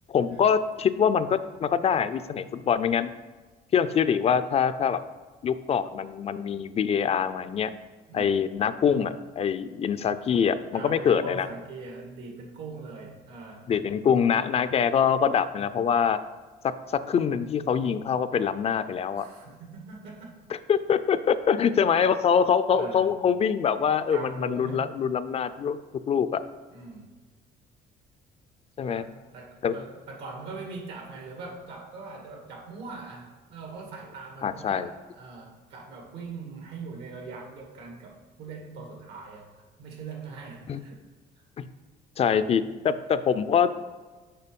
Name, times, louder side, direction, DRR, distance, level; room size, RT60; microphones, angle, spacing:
voice 1, 0.1-3.1 3.7-5.0 5.4-7.7 8.1-11.5 13.7-16.2 16.9-19.3 20.7-25.8 26.1-26.4 28.8-29.0 29.6-29.8 34.4-34.9 40.7-40.8 41.6-41.7 42.2-43.7, left 7 dB, 40° left, 13 dB, 0.4 m, -24 dB
voice 2, 8.1-8.4 10.7-13.7 19.1-20.4 22.7-23.1 24.1-24.9 26.7-27.1 28.8-39.5 39.8-41.0 41.4-41.5, right 4 dB, 80° right, 1 dB, 2.1 m, -41 dB
6.7 x 5.2 x 5.3 m, 1.3 s
cardioid pair, 110°, 17 cm